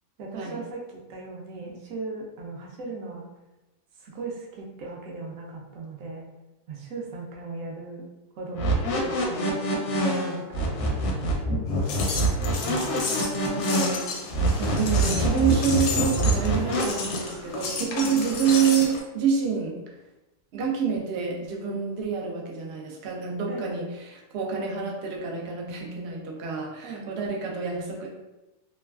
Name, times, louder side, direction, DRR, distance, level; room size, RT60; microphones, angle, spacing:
voice 1, 0.2-0.8 1.1-3.3 4.0-6.3 6.7-8.0 8.4-11.6 12.5-13.8 18.0-18.2 23.5-23.7 26.8-27.1, right 3 dB, 70° right, -1 dB, 0.9 m, -38 dB
sound 1, 8.6-16.8, right 1 dB, 65° left, 0.7 m, -26 dB
sound 2, 11.7-19.0, left 4 dB, 85° left, 1.2 m, -32 dB
voice 2, 14.2-19.8 20.5-28.1, right 6 dB, 85° right, -1 dB, 0.5 m, -27 dB
3.0 x 2.3 x 2.3 m, 1.0 s
omnidirectional pair, 1.7 m